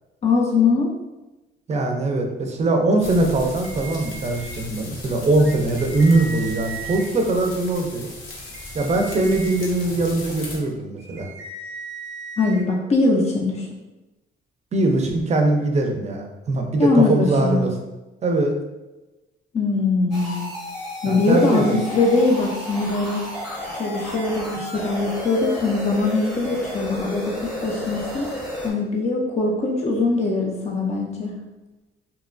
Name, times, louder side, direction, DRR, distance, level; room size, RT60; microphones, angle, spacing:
voice 1, 0.2-0.9 12.4-13.7 16.8-17.6 19.5-20.5 21.0-23.2 23.7-28.3 28.6-31.3, left 3 dB, 35° left, -1 dB, 0.4 m, -21 dB
voice 2, 1.7-8.1 8.7-11.3 14.7-17.7 18.2-18.6 21.1-21.8, right 2 dB, 35° right, 3 dB, 0.5 m, -21 dB
sound 1, 3.0-10.6, left 1 dB, 75° left, 0.7 m, -37 dB
sound 2, 3.6-4.6 5.4-7.1 8.4-9.7 11.0-12.6, right 3 dB, 90° right, 0.5 m, -37 dB
sound 3, 20.1-28.7, equal, ahead, 0.8 m, -32 dB
2.8 x 2.2 x 2.5 m, 1.1 s
cardioid pair, 90°, 20 cm